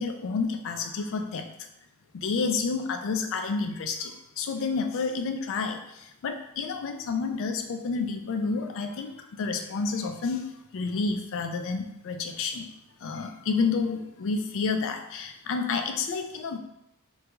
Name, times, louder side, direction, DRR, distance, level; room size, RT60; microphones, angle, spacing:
voice 1, 0.0-1.5 2.1-10.4 10.7-12.7 13.0-16.6, left 4 dB, 65° left, 6 dB, 0.4 m, -30 dB
3.4 x 2.3 x 3.0 m, 0.83 s
head